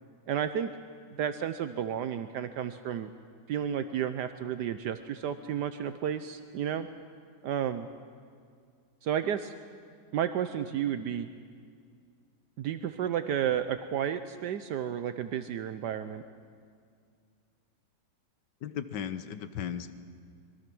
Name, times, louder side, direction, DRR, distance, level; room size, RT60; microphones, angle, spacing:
voice 1, 0.3-0.7 1.1-3.1 3.5-6.9 7.4-7.9 9.0-9.5 10.1-11.3 12.6-16.2, right 9 dB, 75° right, 10 dB, 1.3 m, -32 dB
voice 2, 18.6-19.9, left 8 dB, 80° left, 11 dB, 1.5 m, -36 dB
25.5 x 22.5 x 6.1 m, 2.2 s
omnidirectional pair, 1.9 m